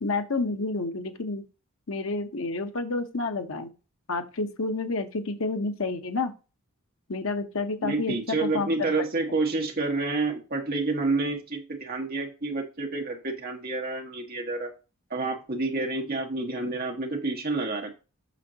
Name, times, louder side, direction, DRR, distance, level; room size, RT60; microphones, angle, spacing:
voice 1, 0.0-1.4 1.9-3.7 4.1-6.3 7.1-8.9, left 3 dB, 65° left, 7 dB, 1.0 m, -29 dB
voice 2, 7.8-14.7 15.1-17.9, right 3 dB, 40° right, 2 dB, 1.6 m, -29 dB
8.3 x 6.3 x 2.9 m, 0.31 s
head